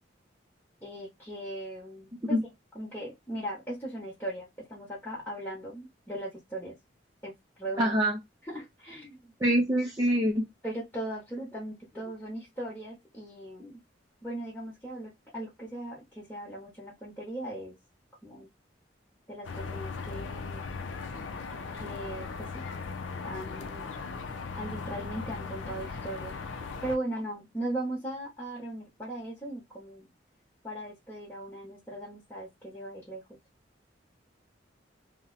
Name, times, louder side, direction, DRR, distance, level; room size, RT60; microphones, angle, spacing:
voice 1, 0.8-2.4 2.7-6.8 7.2-7.9 8.4-9.3 10.6-13.8 14.2-17.7 18.2-18.5 19.3-20.6 21.7-22.6 23.2-23.8 24.6-26.4 26.8-30.1 30.6-33.2, right 1 dB, 10° left, 1.0 m, -38 dB
voice 2, 7.8-8.2 9.4-10.5, equal, 20° right, 0.5 m, -25 dB
sound 1, 19.4-27.0, left 4 dB, 85° left, 0.5 m, -38 dB
2.6 x 2.1 x 3.9 m
head